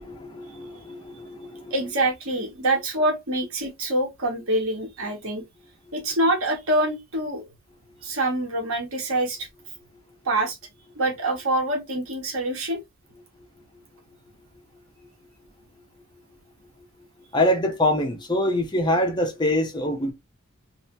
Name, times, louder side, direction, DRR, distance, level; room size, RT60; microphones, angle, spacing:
voice 1, 0.0-1.7 17.3-20.1, left 1 dB, 20° left, 0.7 m, -24 dB
voice 2, 1.7-5.4 5.9-7.5 8.0-9.5 10.2-10.6 10.9-12.8, right 1 dB, 85° right, 1.2 m, -25 dB
3.2 x 3.1 x 3.0 m
head